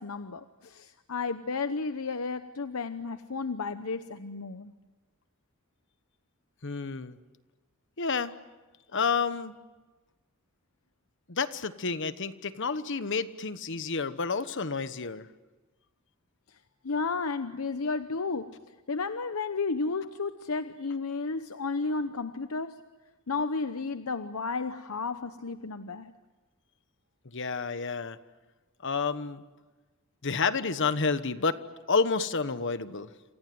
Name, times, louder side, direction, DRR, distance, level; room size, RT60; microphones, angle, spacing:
voice 1, 0.0-4.7 16.5-16.6 16.8-18.6 18.9-22.8 23.3-26.1, left 4 dB, 80° left, 10 dB, 0.9 m, -33 dB
voice 2, 6.6-7.2 8.0-8.3 8.9-9.5 11.3-15.3 27.3-28.2 28.8-29.4 30.2-31.6 31.9-33.1, left 5 dB, 60° left, 12 dB, 1.2 m, -29 dB
27.5 x 27.5 x 7.8 m, 1.2 s
head